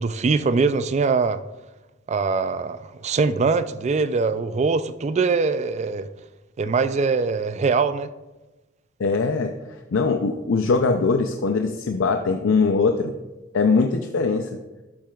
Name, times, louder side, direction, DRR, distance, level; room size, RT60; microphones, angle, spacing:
voice 1, 0.0-1.4 2.1-6.1 6.6-8.1, right 4 dB, 35° right, 0.3 m, -22 dB
voice 2, 9.0-9.5 9.9-13.1 13.5-14.6, left 4 dB, 70° left, 0.5 m, -21 dB
11.5 x 7.5 x 2.4 m
head